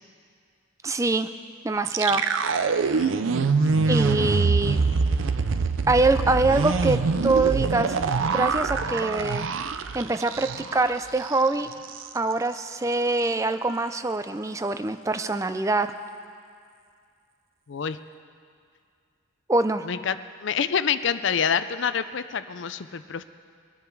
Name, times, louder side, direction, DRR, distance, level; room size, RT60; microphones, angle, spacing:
voice 1, 0.8-1.3 1.6-2.2 3.9-4.8 5.9-7.9 8.3-9.5 9.9-11.7 12.1-15.9 19.5-19.8, right 3 dB, 15° right, 10 dB, 0.4 m, -24 dB
sound 1, 1.8-10.9 11.2-11.3 11.7-12.1, right 4 dB, 70° right, 0.5 m, -24 dB
voice 2, 17.7-18.0 19.8-23.2, left 7 dB, 60° left, 12 dB, 0.5 m, -27 dB
21.5 x 10.0 x 4.7 m, 2.2 s
head